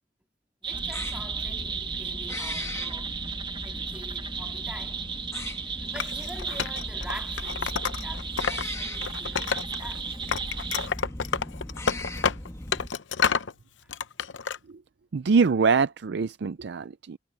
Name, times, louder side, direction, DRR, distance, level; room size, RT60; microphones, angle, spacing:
voice 1, 0.6-3.2 3.6-5.0 5.5-10.1 13.8-13.9, right 1 dB, 5° right, 2.4 m, -45 dB
sound 1, 0.6-10.9, right 5 dB, 25° right, 1.2 m, -35 dB
sound 2, 0.7-12.9, left 1 dB, 15° left, 1.5 m, -38 dB
Wood, 6.0-8.6 8.9-10.0 10.3-13.5 13.9-14.6, left 6 dB, 75° left, 0.8 m, -29 dB
voice 2, 15.1-17.2, right 5 dB, 65° right, 0.5 m, -23 dB
head